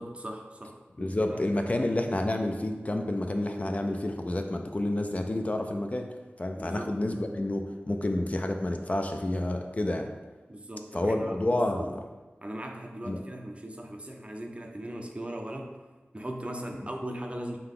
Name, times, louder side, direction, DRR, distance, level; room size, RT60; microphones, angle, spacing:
voice 1, 0.0-1.4 1.7-1.9 6.6-7.0 10.5-11.9 12.4-15.8 16.1-17.6, right 1 dB, 30° right, 2 dB, 0.5 m, -39 dB
voice 2, 1.0-6.1 6.4-10.1 10.9-12.0 13.0-13.2, left 1 dB, 35° left, 4 dB, 0.3 m, -29 dB
3.7 x 2.8 x 3.7 m, 1.2 s
wide cardioid pair, 45°, 4 cm